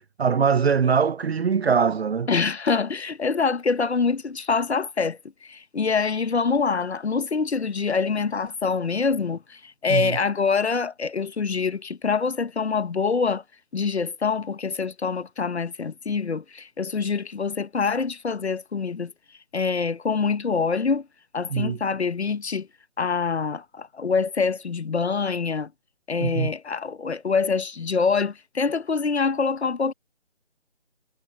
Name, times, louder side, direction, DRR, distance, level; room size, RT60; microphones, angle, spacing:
voice 1, 0.0-2.3 9.9-10.2 21.5-21.8 26.2-26.5, right 6 dB, 60° right, 0.5 m, -22 dB
voice 2, 2.3-13.4 13.7-19.1 19.5-21.1 21.3-22.7 23.0-25.7 26.1-29.9, left 5 dB, 60° left, 1.1 m, -25 dB
figure-of-eight pair, 170°, 36 cm